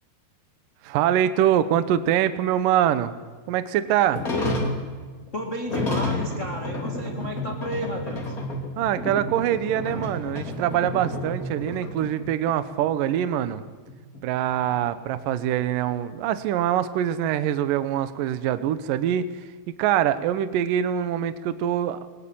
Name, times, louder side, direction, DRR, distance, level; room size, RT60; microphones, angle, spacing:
voice 1, 0.8-3.1 3.5-4.2 8.8-13.6 14.2-19.3 19.8-22.0, right 11 dB, 80° right, 12 dB, 2.0 m, -24 dB
sound 1, 4.1-12.6 12.8-12.9 13.4-13.5 13.9-15.5, left 1 dB, 20° left, 2.8 m, -31 dB
voice 2, 5.3-8.3, left 1 dB, 55° left, 1 dB, 0.8 m, -32 dB
22.0 x 20.0 x 8.8 m, 1.4 s
omnidirectional pair, 5.3 m